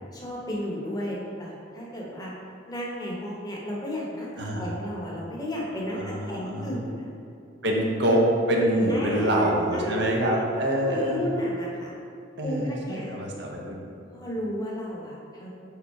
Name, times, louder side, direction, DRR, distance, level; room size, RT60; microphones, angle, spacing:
voice 1, 0.1-2.3 2.7-7.1 7.6-8.1 8.9-10.5 10.8-11.9 12.4-13.1 14.1-15.5, left 1 dB, 20° left, -3 dB, 1.0 m, -33 dB
voice 2, 4.4-4.7 5.9-6.8 7.6-8.2 8.5-11.2 12.4-13.9, right 1 dB, 65° right, -1 dB, 0.9 m, -25 dB
5.3 x 4.2 x 4.7 m, 2.6 s
head